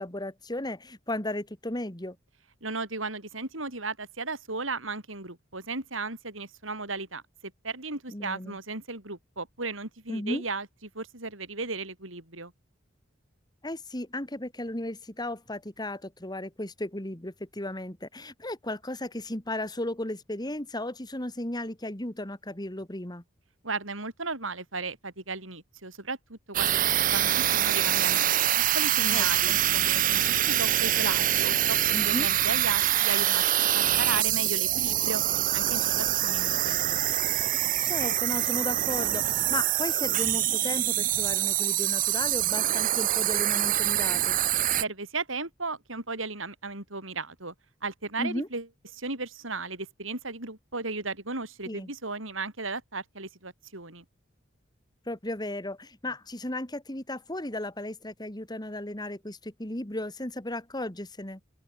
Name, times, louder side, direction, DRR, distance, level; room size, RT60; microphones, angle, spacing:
voice 1, 0.0-2.2 8.1-8.6 10.1-10.4 13.6-23.2 29.1-29.6 31.9-32.3 37.8-44.4 48.2-48.5 51.7-51.9 55.1-61.4, left 1 dB, 20° left, 2.6 m, -35 dB
voice 2, 2.6-10.7 10.9-12.5 23.6-26.8 27.1-28.3 28.7-33.4 33.7-35.2 35.5-36.8 44.8-47.5 47.8-48.7 48.9-54.0, right 3 dB, 90° right, 7.7 m, -35 dB
sound 1, 26.5-44.8, right 13 dB, 45° right, 0.6 m, -25 dB
open air
head